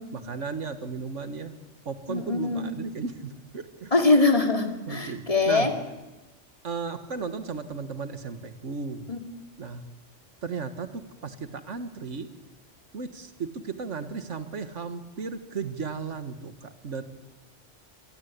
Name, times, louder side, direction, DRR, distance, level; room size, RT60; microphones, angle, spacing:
voice 1, 0.1-1.6 1.9-3.9 4.9-5.7 6.6-9.1 9.6-9.8 10.4-12.3 12.9-17.0, right 5 dB, 80° right, 9 dB, 2.0 m, -35 dB
voice 2, 2.1-2.7 3.9-5.7 9.1-9.2, left 3 dB, 30° left, 3 dB, 2.7 m, -23 dB
26.5 x 18.0 x 8.5 m, 1.1 s
omnidirectional pair, 1.2 m